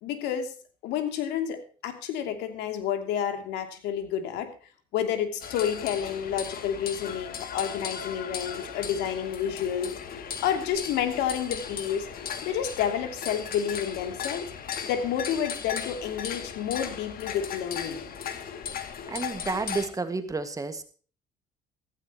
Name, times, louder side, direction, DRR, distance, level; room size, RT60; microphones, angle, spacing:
voice 1, 0.0-0.5 0.8-4.5 4.9-9.9 10.4-12.1 12.4-14.5 14.8-18.0, left 9 dB, 90° left, 7 dB, 2.8 m, -30 dB
sound 1, 5.4-19.9, left 7 dB, 60° left, 2.5 m, -37 dB
voice 2, 19.1-20.8, right 3 dB, 20° right, 10 dB, 1.9 m, -31 dB
16.5 x 15.0 x 3.0 m, 0.39 s
cardioid pair, 110°, 17 cm